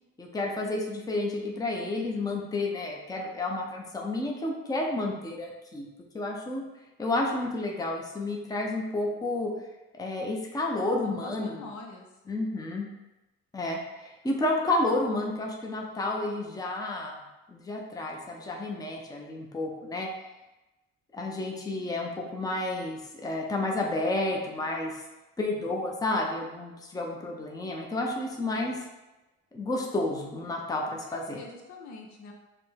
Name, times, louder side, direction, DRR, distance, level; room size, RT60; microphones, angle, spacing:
voice 1, 0.2-5.9 6.1-6.6 7.0-9.5 9.9-11.5 12.3-12.9 13.5-17.2 17.5-20.1 21.1-25.0 25.4-28.8 29.5-31.4, left 2 dB, 10° left, 0 dB, 0.6 m, -31 dB
voice 2, 11.0-12.1 31.1-32.3, left 3 dB, 70° left, 1 dB, 0.8 m, -44 dB
5.0 x 2.2 x 3.3 m, 1.0 s
cardioid pair, 90°, 30 cm